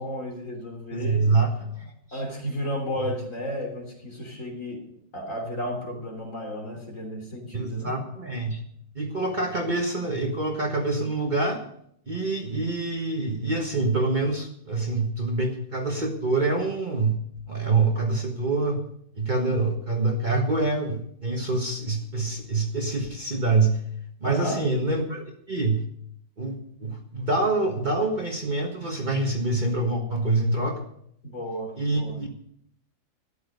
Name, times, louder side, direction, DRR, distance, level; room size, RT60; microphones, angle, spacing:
voice 1, 0.0-1.3 2.1-4.9 5.1-7.9 24.2-24.6 31.2-32.2, equal, 55° left, 0 dB, 3.7 m, -32 dB
voice 2, 0.9-2.2 7.5-8.6 8.9-11.6 12.1-17.2 17.5-18.8 19.1-23.8 24.2-25.8 26.4-30.8 31.8-32.3, right 3 dB, 30° right, 1 dB, 1.5 m, -26 dB
13.5 x 10.5 x 5.3 m, 0.69 s
omnidirectional pair, 1.7 m